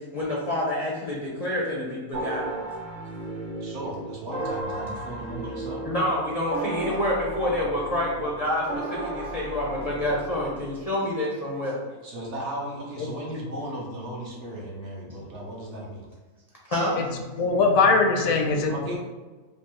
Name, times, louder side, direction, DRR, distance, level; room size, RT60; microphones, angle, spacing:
voice 1, 0.1-2.6 5.8-11.8 16.7-17.0 18.2-18.3, left 1 dB, 50° left, -4 dB, 0.4 m, -27 dB
sound 1, 2.1-10.9, right 2 dB, 80° right, 1.3 m, -35 dB
voice 2, 3.6-5.9 12.0-16.1 18.7-19.0, right 1 dB, 60° right, -2 dB, 1.0 m, -36 dB
voice 3, 17.4-19.0, left 4 dB, 80° left, 4 dB, 1.0 m, -21 dB
5.0 x 2.0 x 3.0 m, 1.3 s
omnidirectional pair, 1.5 m